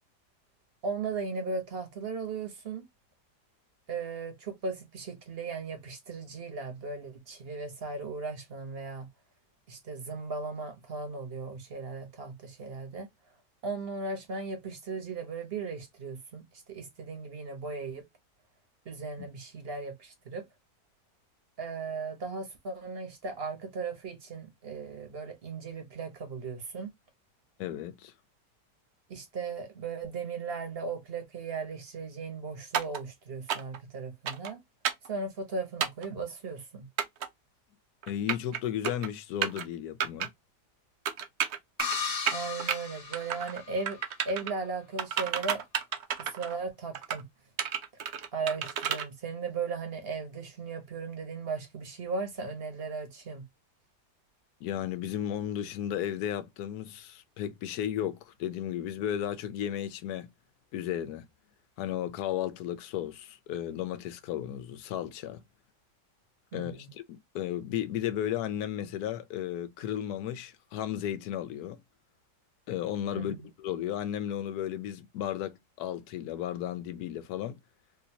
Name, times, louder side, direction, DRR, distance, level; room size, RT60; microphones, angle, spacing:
voice 1, 0.8-2.9 3.9-9.1 9.7-13.1 13.6-18.0 18.8-20.5 21.6-26.9 29.1-34.6 35.0-36.9 42.3-44.0 44.2-45.6 46.2-47.2 48.3-53.4 66.5-66.9 73.1-73.5, right 4 dB, 40° right, 1.1 m, -37 dB
voice 2, 27.6-28.1 38.1-40.3 54.6-60.3 60.7-61.2 61.8-65.4 66.5-71.8 72.7-77.6, left 11 dB, 75° left, 1.1 m, -34 dB
sound 1, 32.7-33.0 33.5-33.8 34.3-34.5 34.8-35.1 35.8-36.1 37.0-37.3 38.0-38.6 38.8-39.1 39.4-39.6 40.0-40.3 41.1-42.0 42.3-42.8 43.1-43.6 43.9-44.5 45.0-46.6 46.9-47.2 47.6-49.1, right 8 dB, 70° right, 0.6 m, -31 dB
sound 2, 41.8-44.0, left 6 dB, 40° left, 0.9 m, -36 dB
3.2 x 2.7 x 2.7 m
omnidirectional pair, 1.8 m